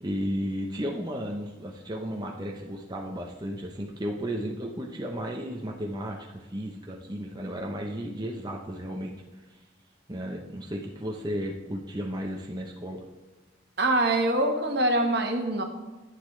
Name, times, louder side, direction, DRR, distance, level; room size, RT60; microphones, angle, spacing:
voice 1, 0.0-9.2 9.5-9.6 10.1-13.0, equal, 20° right, -1 dB, 0.8 m, -34 dB
voice 2, 13.8-15.6, right 1 dB, 55° right, 3 dB, 1.4 m, -24 dB
10.5 x 9.5 x 3.3 m, 1.2 s
head